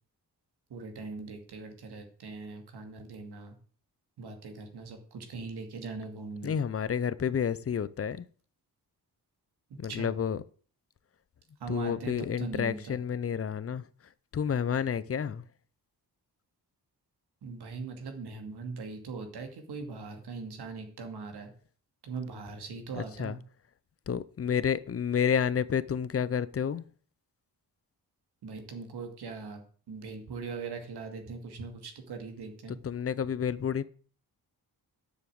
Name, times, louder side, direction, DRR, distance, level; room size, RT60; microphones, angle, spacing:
voice 1, 0.7-3.6 4.2-6.5 9.9-10.1 11.6-13.0 17.4-21.5 22.0-23.4 28.4-29.6 29.9-32.8, right 4 dB, 85° right, 2.6 m, -40 dB
voice 2, 6.4-8.3 9.8-10.4 11.7-13.8 14.3-15.4 22.9-23.4 24.1-26.8 32.8-33.8, left 7 dB, 35° left, 0.6 m, -30 dB
10.0 x 7.3 x 7.8 m
wide cardioid pair, 165°, 38 cm